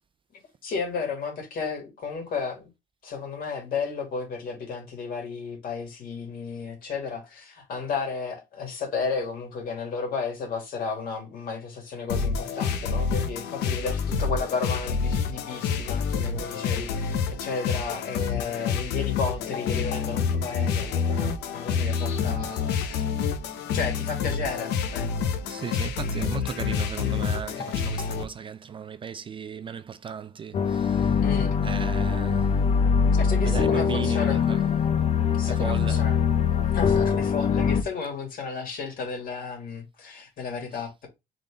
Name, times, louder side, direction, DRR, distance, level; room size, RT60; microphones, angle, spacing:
voice 1, 0.3-2.7 3.0-23.0 23.7-25.2 31.2-31.5 33.1-34.4 35.4-36.2 36.6-41.1, left 5 dB, 60° left, 2.1 m, -33 dB
sound 1, 12.1-28.2, left 6 dB, 85° left, 0.8 m, -28 dB
voice 2, 25.5-31.2 31.6-32.5 33.4-34.7 35.6-36.0 40.7-40.8, right 7 dB, 30° right, 0.3 m, -36 dB
sound 2, 30.5-37.8, left 6 dB, 40° left, 0.6 m, -23 dB
3.8 x 3.7 x 3.4 m
cardioid pair, 110°, 17 cm